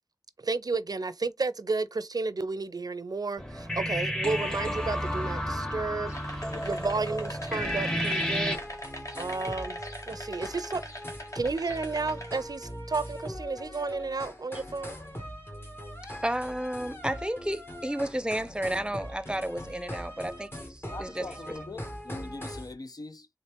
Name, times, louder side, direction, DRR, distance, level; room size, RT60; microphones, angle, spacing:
voice 1, 0.4-6.1 6.6-8.6 9.2-9.8 10.0-10.8 11.3-15.0, right 3 dB, 90° right, 0.4 m, -32 dB
sound 1, 3.4-8.6, equal, 10° left, 0.9 m, -31 dB
sound 2, 6.1-12.4, left 1 dB, 55° left, 1.5 m, -42 dB
sound 3, 7.6-22.7, equal, 40° left, 1.6 m, -41 dB
voice 2, 16.2-21.6, right 1 dB, 15° right, 0.6 m, -32 dB
voice 3, 20.9-23.3, left 2 dB, 80° left, 0.6 m, -42 dB
4.1 x 3.5 x 3.3 m
wide cardioid pair, 50°, 6 cm